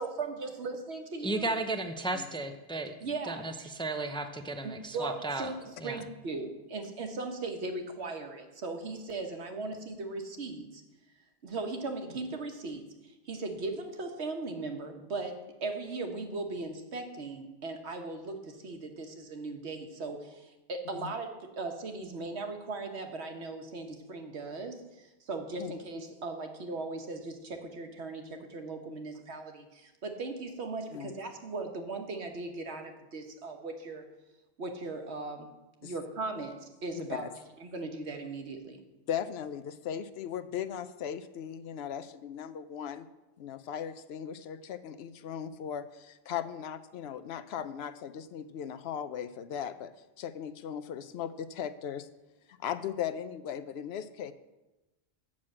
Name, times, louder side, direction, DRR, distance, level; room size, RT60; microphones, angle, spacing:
voice 1, 0.0-1.5 3.0-3.7 4.9-10.8 11.4-34.0 34.6-35.5 35.8-37.2 37.6-38.8, right 3 dB, 85° right, 5 dB, 1.3 m, -38 dB
voice 2, 1.2-3.0 3.2-5.5 5.8-6.0, right 2 dB, 5° left, 7 dB, 0.4 m, -34 dB
voice 3, 39.1-43.1 43.4-49.9 50.2-52.1 52.5-54.3, left 9 dB, 75° left, 13 dB, 0.8 m, -38 dB
7.5 x 6.3 x 7.5 m, 1.0 s
omnidirectional pair, 1.1 m